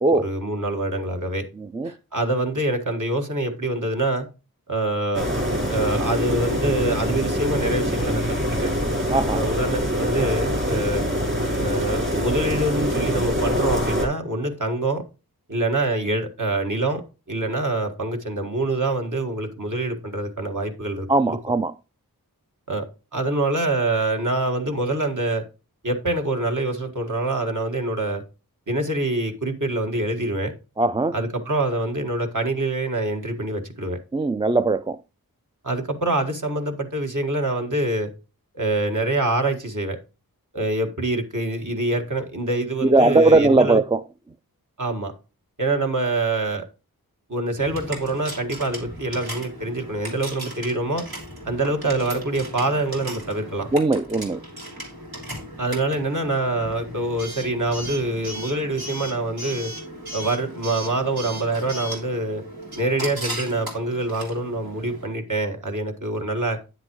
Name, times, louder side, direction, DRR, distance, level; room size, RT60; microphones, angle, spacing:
voice 1, 0.1-1.5 1.8-4.3 4.7-5.3 5.7-8.7 9.3-11.1 11.6-15.0 15.5-17.0 17.3-21.4 22.7-22.9 23.1-25.4 25.8-28.2 28.7-30.5 31.1-34.0 35.6-38.1 38.6-40.0 40.5-43.8 44.8-45.1 45.6-46.7 47.3-51.0 51.5-53.7 55.6-59.7 60.1-62.4 62.8-66.6, right 2 dB, 55° right, 1.8 m, -25 dB
sound 1, 5.1-14.1, equal, 30° right, 4.1 m, -24 dB
voice 2, 9.1-9.4 21.1-21.7 30.8-31.1 34.1-35.0 42.8-44.0 53.7-54.4, right 2 dB, 15° right, 0.3 m, -19 dB
Coin (dropping) / Alarm, 47.6-65.1, right 1 dB, 80° right, 3.0 m, -36 dB
9.6 x 7.6 x 3.0 m
wide cardioid pair, 45°, 36 cm